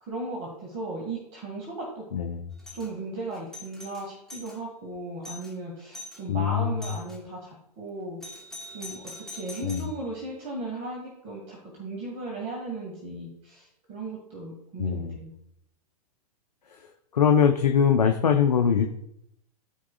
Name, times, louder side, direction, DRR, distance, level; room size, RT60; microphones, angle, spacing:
voice 1, 0.0-2.1 2.7-8.2 8.7-15.3, right 2 dB, 35° right, -2 dB, 2.0 m, -36 dB
voice 2, 2.1-2.4 6.3-6.9 9.6-9.9 14.8-15.1 17.1-18.9, left 7 dB, 80° left, 4 dB, 0.7 m, -22 dB
Doorbell, 2.6-2.9 3.3-4.6 4.9-5.0 5.2-5.5 5.9-6.2 6.8-7.2 8.2-10.0, left 2 dB, ahead, 1.7 m, -43 dB
14.0 x 4.8 x 2.4 m, 0.76 s
hypercardioid pair, 105°, 20 cm